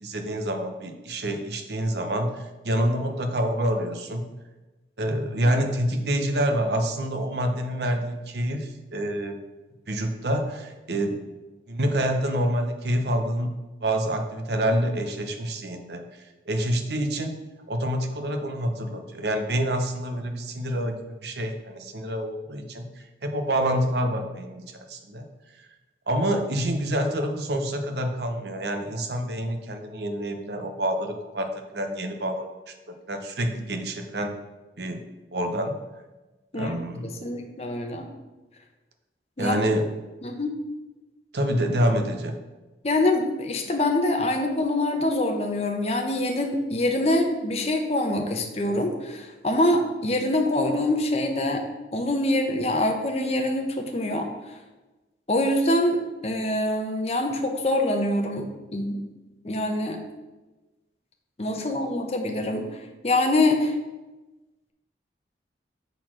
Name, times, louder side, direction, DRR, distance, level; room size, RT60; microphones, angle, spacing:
voice 1, 0.0-4.2 5.0-9.4 9.9-11.2 11.7-13.5 13.8-16.0 16.5-17.4 17.7-22.9 23.2-25.2 26.1-31.5 31.7-34.3 34.8-35.0 35.3-35.8 36.5-37.1 39.4-39.9 41.3-42.4, right 1 dB, 70° right, 5 dB, 0.9 m, -27 dB
voice 2, 36.5-38.1 39.4-39.7 40.2-40.5 42.8-51.6 51.9-54.6 55.3-56.0 56.2-59.0 59.4-60.0 61.4-63.7, left 1 dB, 35° left, 3 dB, 0.9 m, -25 dB
6.7 x 4.1 x 6.0 m, 1.1 s
head